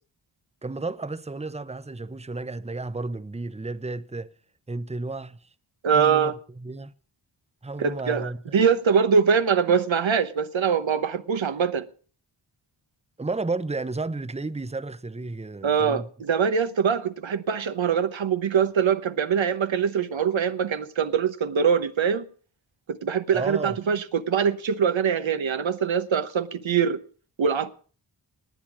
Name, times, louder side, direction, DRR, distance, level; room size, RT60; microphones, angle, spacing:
voice 1, 0.6-4.3 4.7-5.4 5.9-6.9 7.6-8.6 13.2-16.1 23.3-23.8, right 3 dB, 15° right, 0.9 m, -32 dB
voice 2, 5.8-6.3 7.8-11.9 15.6-22.2 22.9-27.0 27.4-27.7, right 6 dB, 85° right, 1.1 m, -23 dB
19.0 x 9.1 x 6.1 m
cardioid pair, 50°, 45 cm